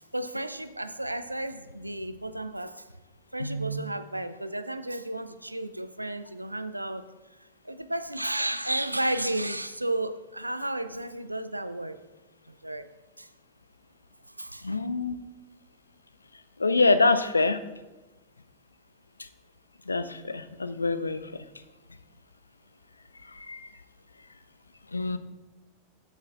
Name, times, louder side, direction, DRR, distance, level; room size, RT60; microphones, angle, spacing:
voice 1, 0.0-2.8 3.3-7.1 7.6-12.0 12.5-12.9 13.2-13.3 14.4-14.8, right 1 dB, 85° right, 0.3 m, -33 dB
voice 2, 3.4-3.8 14.6-15.2 16.6-17.6 19.9-21.2 23.3-23.6 24.9-25.2, left 3 dB, 80° left, 0.4 m, -25 dB
14.5 x 7.1 x 2.4 m
figure-of-eight pair, 90°, 0 cm